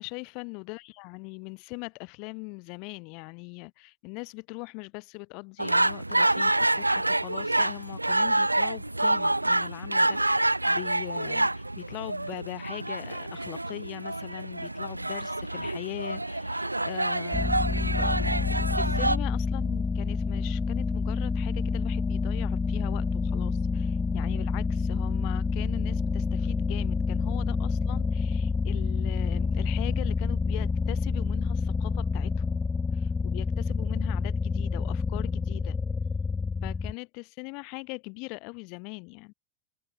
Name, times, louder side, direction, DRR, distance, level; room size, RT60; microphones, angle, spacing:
voice 1, 0.0-32.6 32.9-35.8 36.6-39.3, left 32 dB, 45° left, 7.8 m, -41 dB
sound 1, 5.6-19.2, right 2 dB, 85° right, 2.0 m, -27 dB
sound 2, 17.3-36.9, left 4 dB, 15° left, 1.0 m, -28 dB
figure-of-eight pair, 90°, 0 cm